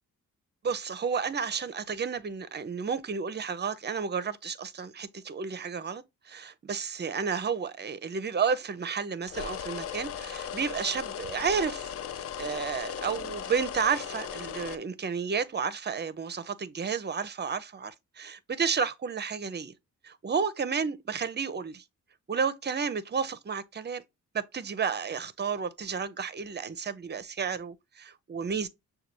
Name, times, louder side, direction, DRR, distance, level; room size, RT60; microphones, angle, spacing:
voice 1, 0.6-11.9 12.4-19.7 20.0-21.8 22.3-24.0 24.3-28.7, right 6 dB, 30° right, 0.6 m, -31 dB
sound 1, 9.3-14.8, left 8 dB, 45° left, 0.5 m, -37 dB
6.5 x 2.3 x 3.0 m
cardioid pair, 75°, 33 cm